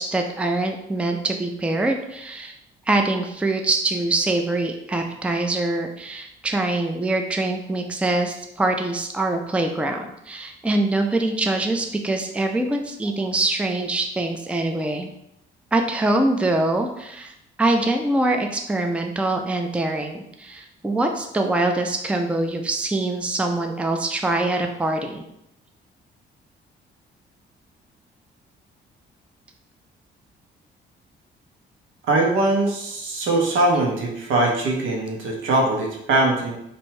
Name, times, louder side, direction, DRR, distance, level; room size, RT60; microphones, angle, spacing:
voice 1, 0.0-2.5 2.9-15.1 15.7-17.3 17.6-25.2, right 2 dB, 5° right, 4 dB, 0.4 m, -24 dB
voice 2, 32.1-36.6, right 2 dB, 80° right, -1 dB, 1.1 m, -21 dB
2.9 x 2.6 x 4.3 m, 0.79 s
cardioid pair, 90°, 20 cm